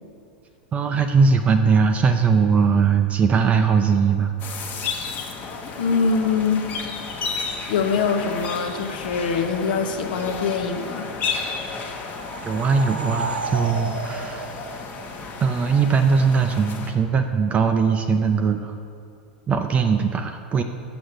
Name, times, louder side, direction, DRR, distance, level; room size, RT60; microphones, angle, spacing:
voice 1, 0.7-4.3 12.4-14.5 15.4-18.8 19.5-20.6, right 5 dB, 25° right, 7 dB, 0.5 m, -20 dB
sound 1, 4.4-16.9, left 4 dB, 35° left, 1.1 m, -33 dB
voice 2, 5.8-6.7 7.7-11.1, left 5 dB, 65° left, 5 dB, 0.9 m, -23 dB
sound 2, 11.9-15.5, right 3 dB, 85° right, 0.6 m, -32 dB
7.0 x 6.2 x 6.4 m, 2.4 s
hypercardioid pair, 95°, 5 cm